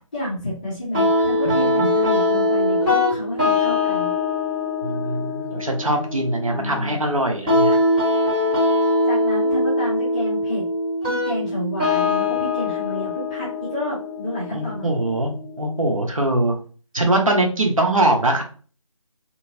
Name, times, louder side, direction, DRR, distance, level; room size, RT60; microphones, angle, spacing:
voice 1, 0.1-4.1 6.5-7.0 9.1-10.7 11.0-14.9, left 1 dB, 15° left, -8 dB, 0.6 m, -30 dB
sound 1, 0.9-15.9, left 2 dB, 15° right, 0.9 m, -22 dB
voice 2, 1.5-1.8 4.8-7.8 14.5-16.6 16.9-18.4, right 1 dB, 75° right, 2 dB, 0.8 m, -22 dB
2.9 x 2.6 x 2.6 m, 0.40 s
figure-of-eight pair, 155°, 17 cm